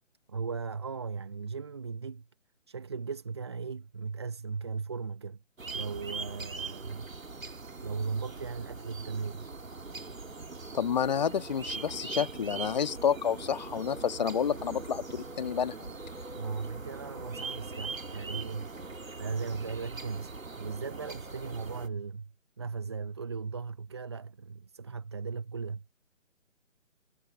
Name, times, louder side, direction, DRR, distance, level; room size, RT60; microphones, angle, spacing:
voice 1, 0.3-2.3 2.7-5.4 5.7-7.1 7.8-9.5 16.3-18.9 19.2-25.9, right 5 dB, 20° right, 0.8 m, -37 dB
sound 1, 5.6-21.9, right 3 dB, 90° right, 1.8 m, -41 dB
voice 2, 10.7-15.9, left 7 dB, 35° left, 1.4 m, -29 dB
figure-of-eight pair, 155°, 39 cm